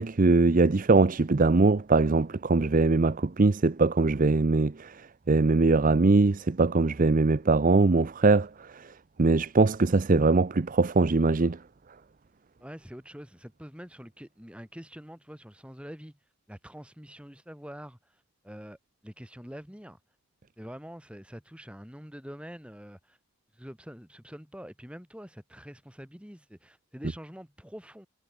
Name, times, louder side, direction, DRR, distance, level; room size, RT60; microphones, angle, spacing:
voice 1, 0.0-8.9 9.2-11.6, right 3 dB, 35° right, 0.5 m, -22 dB
voice 2, 12.6-16.2 16.5-20.0 20.6-23.2 23.5-28.1, equal, 5° right, 2.8 m, -45 dB
head